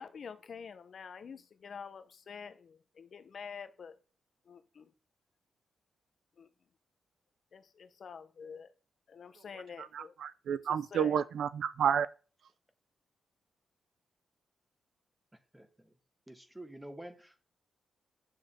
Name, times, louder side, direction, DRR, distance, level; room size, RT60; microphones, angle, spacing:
voice 1, 0.0-4.0 4.5-4.9 6.4-6.5 7.5-8.7 9.1-10.1 10.6-11.2, left 6 dB, 60° left, 0.9 m, -47 dB
voice 2, 9.9-12.1, right 8 dB, 80° right, 0.4 m, -30 dB
voice 3, 16.3-17.5, right 1 dB, 10° right, 1.5 m, -48 dB
10.0 x 6.6 x 3.7 m
cardioid pair, 85°, 0 cm